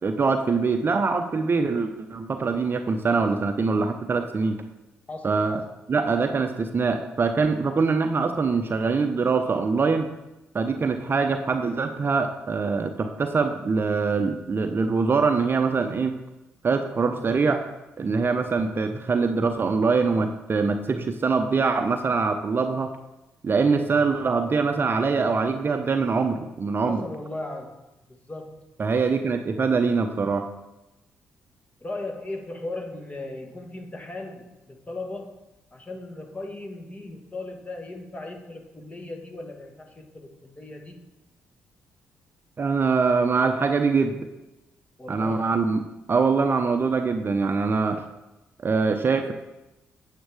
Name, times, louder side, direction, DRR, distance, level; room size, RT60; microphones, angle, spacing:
voice 1, 0.0-4.6 5.2-5.6 5.9-10.1 10.5-16.2 16.6-17.7 18.0-22.9 23.4-27.0 28.8-30.5 42.6-44.3 45.1-45.8 46.1-48.0 48.6-49.3, right 4 dB, 35° right, 7 dB, 0.7 m, -23 dB
voice 2, 5.1-5.6 26.8-28.7 31.8-35.3 35.7-41.0 45.0-45.6, left 2 dB, 25° left, 3 dB, 1.5 m, -37 dB
8.7 x 7.3 x 3.5 m, 0.99 s
figure-of-eight pair, 40°, 6 cm